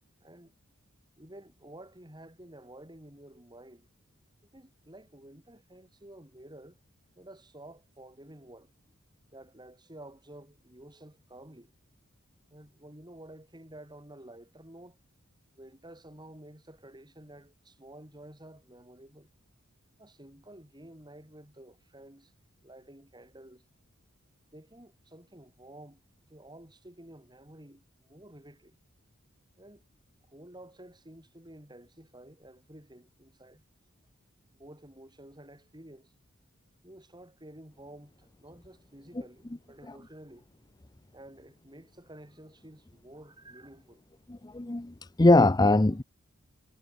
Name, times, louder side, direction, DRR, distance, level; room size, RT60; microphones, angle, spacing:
voice 1, 0.2-0.5 1.2-3.9 4.5-6.8 7.2-8.7 9.3-11.7 12.5-15.0 15.6-19.3 20.0-22.3 22.6-23.7 24.5-28.8 29.6-29.8 30.3-33.6 34.5-36.1 36.8-40.5 41.1-44.0, right 1 dB, 20° right, 5.0 m, -51 dB
voice 2, 44.3-46.0, left 2 dB, 20° left, 0.6 m, -22 dB
head